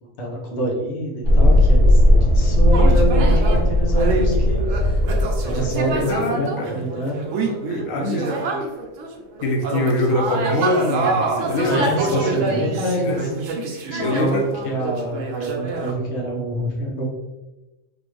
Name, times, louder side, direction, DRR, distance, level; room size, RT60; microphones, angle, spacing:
voice 1, 0.0-4.6 5.4-7.3 11.6-13.4 13.9-17.1, equal, 60° left, -2 dB, 1.1 m, -26 dB
Thunderstorm, 1.2-8.7, left 1 dB, 20° right, 0.8 m, -17 dB
sound 1, 2.7-3.6 4.0-9.1 9.4-15.9, right 3 dB, 80° right, 1.0 m, -26 dB
voice 2, 5.9-6.7 7.7-8.4 9.4-11.9 13.0-13.2 13.7-14.4, left 2 dB, 90° left, 0 dB, 1.0 m, -24 dB
3.5 x 2.5 x 3.0 m, 1.0 s
omnidirectional pair, 1.4 m